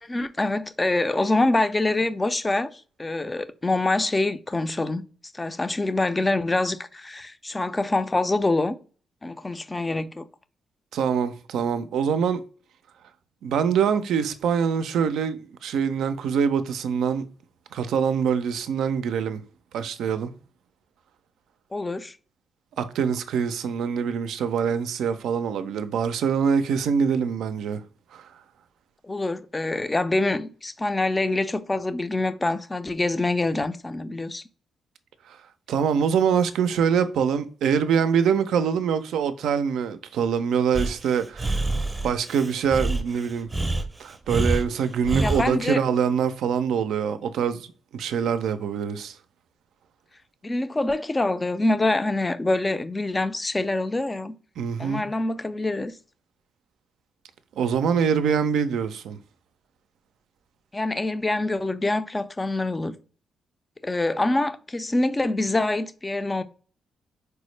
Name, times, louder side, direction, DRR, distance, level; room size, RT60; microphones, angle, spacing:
voice 1, 0.0-5.0 5.3-8.8 9.2-10.3 21.7-22.2 29.0-34.4 45.2-45.8 50.4-54.4 54.8-55.9 60.7-62.9 63.8-66.4, left 2 dB, 25° left, 0.4 m, -25 dB
voice 2, 10.9-12.4 13.4-17.3 17.7-19.4 19.7-20.3 22.8-27.8 28.1-28.3 35.3-35.4 35.7-41.6 42.0-43.5 44.0-49.2 54.6-55.0 57.6-59.2, right 7 dB, 80° right, 0.3 m, -24 dB
Breathing, 40.7-45.5, right 2 dB, 25° right, 0.6 m, -27 dB
4.4 x 2.0 x 3.1 m
supercardioid pair, 65°, 0 cm